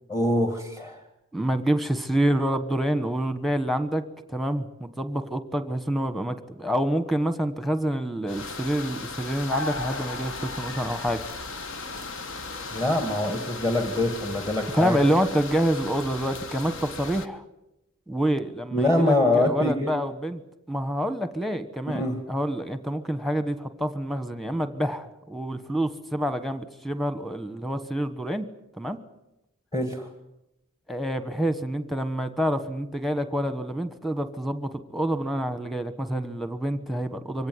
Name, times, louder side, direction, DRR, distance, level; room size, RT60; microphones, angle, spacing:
voice 1, 0.1-1.0 12.7-15.0 18.7-19.9 21.9-22.2 29.7-30.1, left 1 dB, 20° left, 5 dB, 1.9 m, -24 dB
voice 2, 1.3-4.0 4.3-11.2 14.7-17.4 18.1-20.4 20.7-22.0 22.3-28.5 28.8-29.0 30.9-37.5, right 1 dB, ahead, 11 dB, 1.2 m, -27 dB
sound 1, 8.3-17.3, left 3 dB, 60° left, 1.4 m, -37 dB
sound 2, 9.5-14.7, left 2 dB, 85° left, 2.1 m, -38 dB
24.5 x 17.0 x 9.5 m, 0.90 s
head